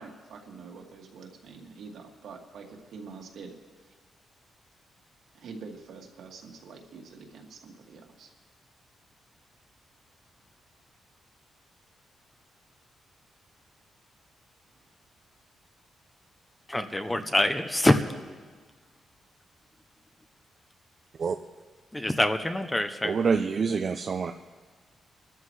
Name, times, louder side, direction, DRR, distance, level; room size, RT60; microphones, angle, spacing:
voice 1, 0.0-3.6 5.3-8.3 16.9-17.4, right 4 dB, 75° right, 0 dB, 2.1 m, -46 dB
voice 2, 16.7-18.0 21.9-23.2, left 1 dB, 10° left, 9 dB, 0.6 m, -25 dB
voice 3, 23.0-24.3, right 5 dB, 40° right, 5 dB, 0.5 m, -26 dB
27.0 x 13.0 x 3.2 m, 1.5 s
wide cardioid pair, 170°, 0 cm